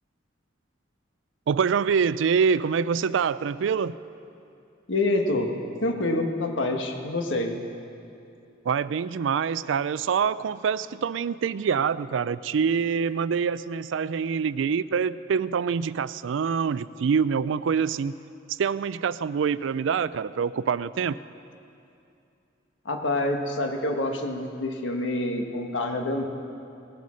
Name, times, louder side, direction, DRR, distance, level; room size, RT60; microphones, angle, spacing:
voice 1, 1.5-4.0 8.7-18.2 18.5-21.2, right 6 dB, 80° right, 17 dB, 0.4 m, -25 dB
voice 2, 4.9-5.5 5.8-7.6 22.8-26.2, left 2 dB, 80° left, 3 dB, 1.5 m, -27 dB
19.0 x 9.5 x 6.3 m, 2.6 s
head